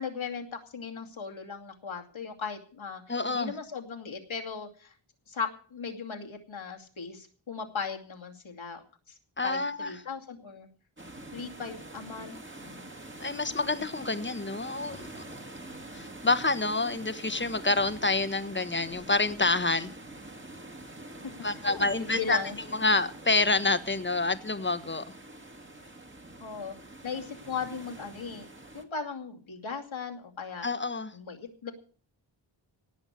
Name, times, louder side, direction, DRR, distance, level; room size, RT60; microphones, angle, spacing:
voice 1, 0.0-4.9 5.3-10.7 11.3-12.9 21.2-21.3 21.6-22.6 26.4-26.7 27.0-28.5 28.7-30.7 31.1-31.7, left 5 dB, 75° left, 2.6 m, -38 dB
voice 2, 3.1-3.5 9.4-9.9 13.2-15.1 15.9-19.9 21.4-22.4 22.7-25.0 30.6-31.2, left 3 dB, 25° left, 1.4 m, -28 dB
sound 1, 11.0-28.8, right 1 dB, 25° right, 2.3 m, -45 dB
18.0 x 6.1 x 8.4 m
wide cardioid pair, 65°, 47 cm